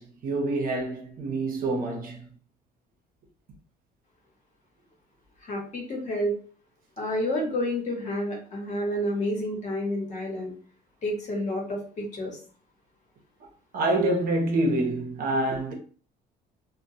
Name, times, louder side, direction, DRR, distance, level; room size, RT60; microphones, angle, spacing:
voice 1, 0.0-2.3 13.7-15.7, right 2 dB, 55° right, 0.8 m, -26 dB
voice 2, 5.4-6.3 7.0-10.6 11.0-12.4, left 1 dB, 45° left, 1.1 m, -29 dB
2.2 x 2.2 x 2.7 m
cardioid pair, 110°, 17 cm